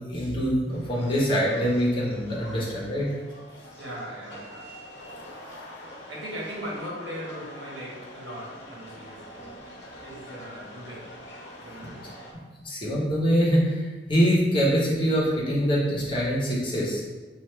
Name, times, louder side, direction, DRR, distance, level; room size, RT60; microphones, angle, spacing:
voice 1, 0.1-3.0 12.6-17.0, equal, 30° left, -6 dB, 1.2 m, -24 dB
sound 1, 0.7-12.3, equal, 80° left, 1.1 m, -45 dB
voice 2, 3.8-4.8 6.1-9.6 10.0-11.1 11.6-12.1, equal, 90° right, -5 dB, 1.4 m, -39 dB
5.4 x 2.8 x 3.3 m, 1.3 s
head